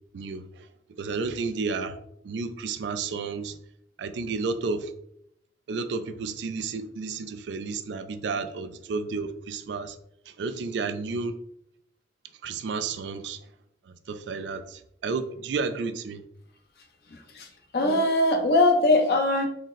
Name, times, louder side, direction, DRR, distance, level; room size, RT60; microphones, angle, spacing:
voice 1, 0.1-0.7 1.0-2.0 2.2-3.6 4.0-4.9 5.7-10.0 10.3-11.3 12.4-13.4 13.9-16.2, right 4 dB, 85° right, 0.4 m, -32 dB
voice 2, 17.1-17.5 17.7-19.5, left 2 dB, 60° left, 0.6 m, -21 dB
4.1 x 2.1 x 3.7 m
head